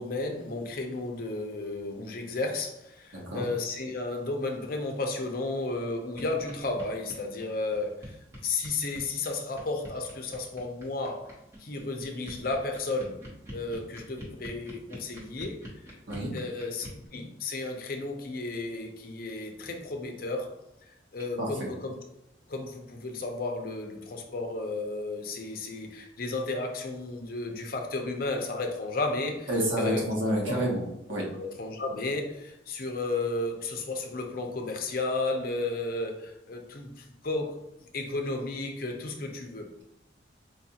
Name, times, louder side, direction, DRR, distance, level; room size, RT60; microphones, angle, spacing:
voice 1, 0.0-8.2 8.4-13.2 13.5-15.8 16.3-20.6 20.8-22.0 22.5-30.0 30.4-30.6 31.4-37.6 37.9-39.7, left 2 dB, 50° left, 0.5 m, -33 dB
sound 1, 6.2-6.3 6.5-6.6 6.8-17.1, equal, 15° right, 1.0 m, -46 dB
voice 2, 29.5-30.8 31.1-31.2, equal, 80° right, 1.2 m, -28 dB
4.5 x 2.4 x 2.8 m
head